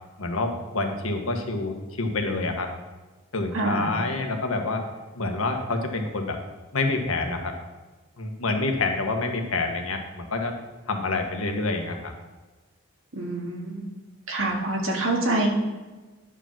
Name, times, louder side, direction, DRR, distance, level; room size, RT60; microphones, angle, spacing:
voice 1, 0.2-2.7 3.3-4.8 5.1-6.4 6.7-7.6 8.2-10.6 10.9-12.1, left 3 dB, 85° left, 4 dB, 1.4 m, -27 dB
voice 2, 3.5-3.9 13.1-13.8 14.3-15.5, right 2 dB, 70° right, 0 dB, 1.9 m, -26 dB
10.5 x 5.0 x 5.9 m, 1.2 s
head